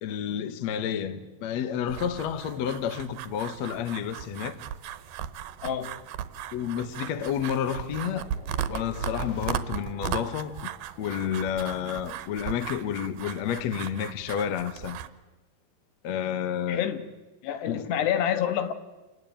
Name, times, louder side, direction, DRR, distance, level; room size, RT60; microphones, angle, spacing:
voice 1, 0.0-4.6 6.5-8.3 8.7-10.7 11.0-15.0 16.0-16.8 17.7-17.8, left 8 dB, 55° left, 2.1 m, -30 dB
sound 1, 1.9-15.1, right 10 dB, 70° right, 2.8 m, -37 dB
sound 2, 5.5-12.3, left 2 dB, 35° left, 6.6 m, -46 dB
voice 2, 5.6-6.0 16.7-17.1 17.4-18.7, left 9 dB, 85° left, 3.6 m, -28 dB
27.5 x 20.0 x 8.7 m
omnidirectional pair, 4.7 m